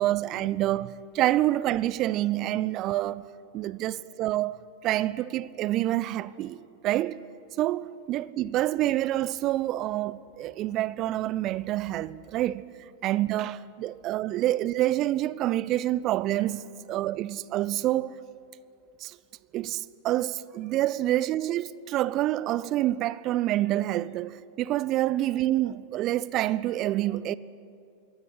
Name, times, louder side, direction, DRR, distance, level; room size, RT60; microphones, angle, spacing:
voice 1, 0.0-3.2 3.5-7.2 7.6-12.6 13.0-18.1 19.0-19.2 19.5-27.4, right 14 dB, 35° right, 0.6 m, -27 dB
23.0 x 17.0 x 9.8 m
figure-of-eight pair, 90°, 0 cm